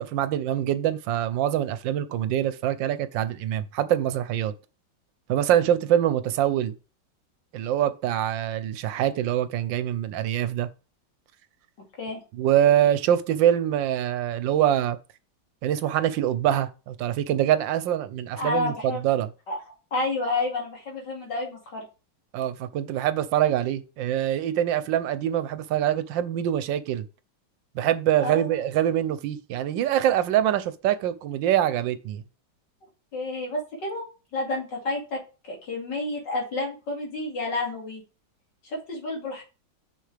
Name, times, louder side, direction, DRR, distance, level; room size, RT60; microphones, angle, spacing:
voice 1, 0.0-4.5 5.3-6.7 7.5-10.7 12.3-15.0 15.6-19.3 22.3-27.0 27.7-32.2, right 11 dB, 85° right, 1.4 m, -24 dB
voice 2, 18.4-19.0 19.5-19.6 19.9-21.9 28.2-28.6 33.1-34.0 34.3-38.0 38.6-39.4, left 2 dB, 70° left, 3.0 m, -30 dB
6.5 x 6.3 x 3.4 m
omnidirectional pair, 2.0 m